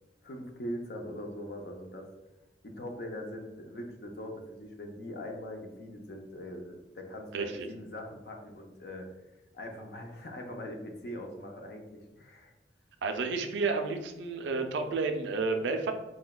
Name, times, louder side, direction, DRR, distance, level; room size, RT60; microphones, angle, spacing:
voice 1, 0.2-2.1 2.6-9.1 9.5-12.5, left 1 dB, 60° left, 3 dB, 0.5 m, -41 dB
voice 2, 13.0-15.9, right 4 dB, 85° right, 7 dB, 0.3 m, -31 dB
3.8 x 2.1 x 2.2 m, 1.1 s
head